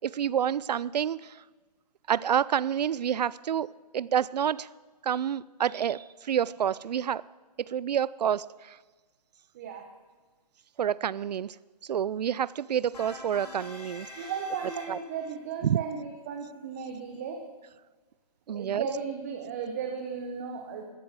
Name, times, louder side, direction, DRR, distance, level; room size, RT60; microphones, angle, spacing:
voice 1, 0.0-1.4 2.1-3.7 3.9-4.7 5.0-7.2 7.7-8.8 10.8-11.6 11.9-14.3 14.9-15.0 15.6-15.8 18.5-18.9, right 9 dB, 80° right, 21 dB, 0.4 m, -28 dB
voice 2, 9.5-9.9 14.1-17.4 18.5-20.8, right 6 dB, 25° right, 4 dB, 0.9 m, -35 dB
sound 1, 12.9-15.3, left 2 dB, 65° left, 4.8 m, -45 dB
13.5 x 8.7 x 8.0 m, 1.3 s
hypercardioid pair, 170°, 21 cm